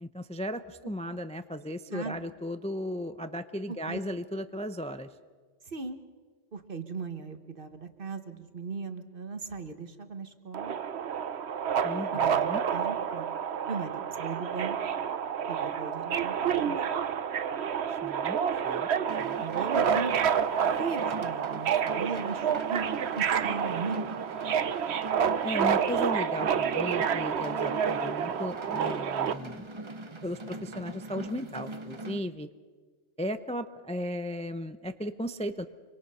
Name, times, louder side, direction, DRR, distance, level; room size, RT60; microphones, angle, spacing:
voice 1, 0.0-5.1 11.8-12.6 18.0-18.4 18.6-18.9 19.2-19.4 25.4-29.6 30.2-32.5 33.2-35.7, equal, 5° left, 10 dB, 0.6 m, -36 dB
voice 2, 3.7-4.0 5.7-6.0 6.5-10.8 12.1-13.3 13.7-14.8 15.5-16.8 19.4-20.1 20.8-22.8 23.1-24.2, right 4 dB, 45° right, 9 dB, 1.5 m, -38 dB
Subway metro underground, 10.5-29.3, right 8 dB, 65° right, 1.1 m, -29 dB
sound 1, 19.1-32.2, right 2 dB, 25° right, 1.0 m, -42 dB
25.5 x 25.0 x 5.6 m, 1.5 s
omnidirectional pair, 1.3 m